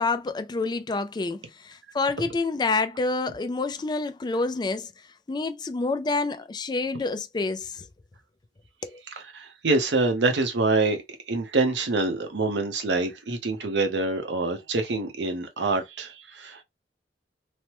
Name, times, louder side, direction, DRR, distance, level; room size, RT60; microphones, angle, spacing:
voice 1, 0.0-4.9 5.3-7.9 8.8-9.0, left 3 dB, 25° left, 0.3 m, -28 dB
voice 2, 9.2-11.0 11.3-16.6, right 3 dB, 75° right, 0.7 m, -26 dB
3.2 x 2.0 x 3.0 m
head